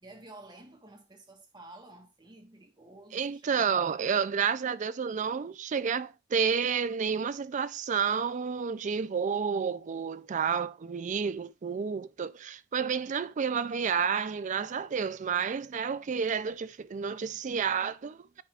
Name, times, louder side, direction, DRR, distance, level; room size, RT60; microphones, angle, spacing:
voice 1, 0.0-4.5, right 2 dB, 20° right, 1.3 m, -52 dB
voice 2, 3.1-18.4, right 6 dB, 35° right, 0.3 m, -30 dB
9.5 x 5.0 x 2.4 m
head